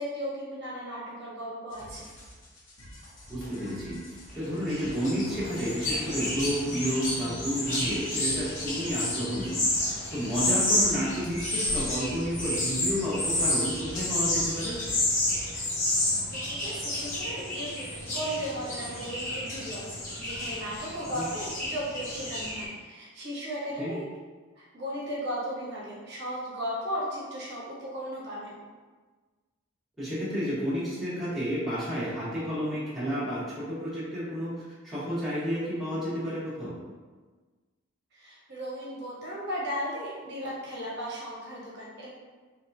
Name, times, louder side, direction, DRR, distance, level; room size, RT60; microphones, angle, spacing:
voice 1, 0.0-2.1 16.3-24.0 24.6-28.6 38.1-42.1, equal, 55° right, -6 dB, 0.8 m, -36 dB
sound 1, 1.7-15.6, equal, 65° left, 0.8 m, -47 dB
voice 2, 3.3-4.0 4.3-9.5 9.8-14.8 21.1-21.2 23.8-23.9 30.0-34.5 34.8-36.7, equal, ahead, -12 dB, 1.3 m, -31 dB
sound 2, 4.4-22.7, left 1 dB, 40° left, 1.1 m, -30 dB
4.6 x 2.3 x 2.7 m, 1.4 s
head